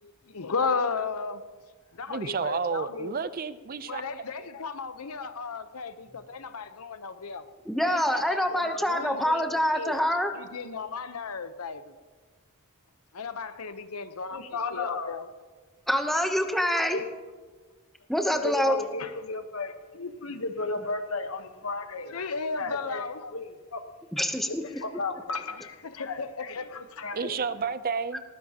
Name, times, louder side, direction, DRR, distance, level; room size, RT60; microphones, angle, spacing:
voice 1, 0.0-1.4 2.0-3.1 3.8-7.4 7.9-10.0 10.3-11.9 13.1-15.3 22.1-23.3 25.8-26.9, left 4 dB, 85° left, 11 dB, 0.9 m, -35 dB
voice 2, 2.1-4.0 27.1-28.2, right 5 dB, 40° right, 14 dB, 0.5 m, -31 dB
voice 3, 7.7-10.3 15.9-17.0 18.1-18.8 24.1-24.6, equal, ahead, 5 dB, 0.8 m, -25 dB
voice 4, 14.3-15.2 16.9-17.1 18.4-22.3 22.6-23.0 23.3-23.8 24.5-27.4, left 3 dB, 65° left, 8 dB, 1.1 m, -34 dB
19.0 x 15.0 x 2.9 m, 1.4 s
head